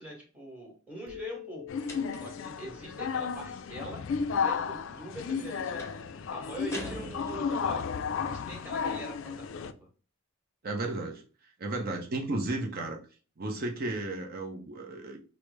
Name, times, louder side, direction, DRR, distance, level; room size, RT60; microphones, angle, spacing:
voice 1, 0.0-4.0 4.3-6.0 6.3-7.9 8.2-9.9, right 1 dB, 5° right, -2 dB, 1.3 m, -43 dB
sound 1, 1.1-4.6, left 11 dB, 90° right, 0.8 m, -48 dB
sound 2, 1.7-9.7, left 6 dB, 60° left, 0.3 m, -33 dB
sound 3, 1.9-2.5 5.8-6.1 6.7-7.8, left 2 dB, 15° left, 0.7 m, -42 dB
voice 2, 10.6-11.2 11.6-13.0 13.4-15.2, right 2 dB, 45° right, 1 dB, 0.6 m, -33 dB
4.9 x 2.0 x 3.1 m, 0.37 s
head